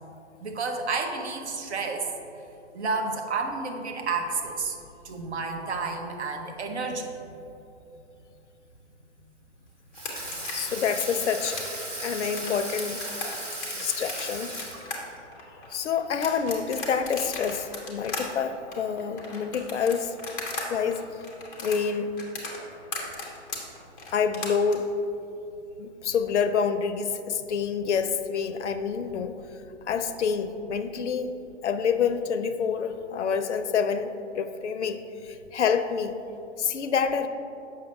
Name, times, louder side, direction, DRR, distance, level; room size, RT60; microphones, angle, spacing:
voice 1, 0.4-2.1 2.7-4.8 5.0-7.1 10.2-10.4, right 4 dB, 65° right, 3 dB, 0.9 m, -30 dB
sound 1, 9.9-20.7 20.9-24.7, left 3 dB, 10° left, 0.4 m, -37 dB
Water tap faucet / Sink (filling or washing), 9.9-15.2, right 1 dB, 85° right, 1.3 m, -36 dB
voice 2, 10.5-11.6 12.0-13.0 13.7-14.5 15.7-20.1 20.7-21.2 21.6-22.1 24.1-25.0 25.8-31.3 31.6-36.2 36.6-37.3, left 6 dB, 70° left, 9 dB, 0.5 m, -27 dB
7.2 x 5.6 x 3.2 m, 2.8 s
figure-of-eight pair, 120°, 36 cm